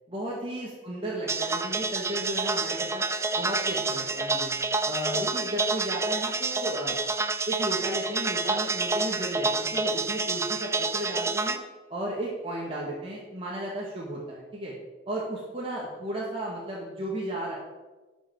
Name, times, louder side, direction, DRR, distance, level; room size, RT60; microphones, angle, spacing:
voice 1, 0.1-3.1 3.3-4.5 4.8-7.0 7.5-11.6 11.9-14.7 15.1-17.6, right 1 dB, 30° right, -5 dB, 1.7 m, -34 dB
sound 1, 1.3-11.6, right 3 dB, 15° right, 0.4 m, -28 dB
11.5 x 5.3 x 6.0 m, 1.2 s
head